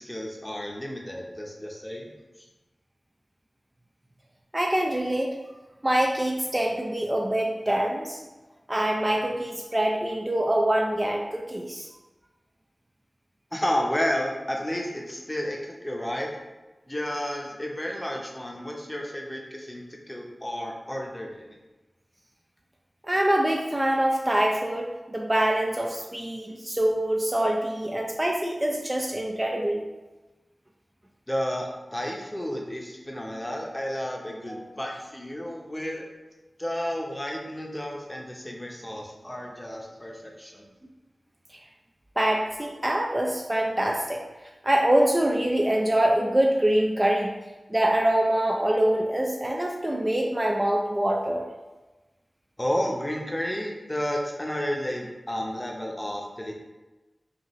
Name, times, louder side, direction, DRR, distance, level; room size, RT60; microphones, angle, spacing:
voice 1, 0.0-2.1 13.5-16.3 16.9-21.5 31.3-36.0 36.6-40.7 52.6-56.5, equal, 15° left, 0 dB, 0.7 m, -31 dB
voice 2, 4.5-5.4 5.8-8.2 8.7-11.9 23.1-29.8 34.5-34.8 42.2-44.2 44.6-47.3 47.7-51.5, right 1 dB, 20° right, 0 dB, 0.4 m, -24 dB
5.3 x 2.5 x 3.0 m, 1.1 s
wide cardioid pair, 80°, 0 cm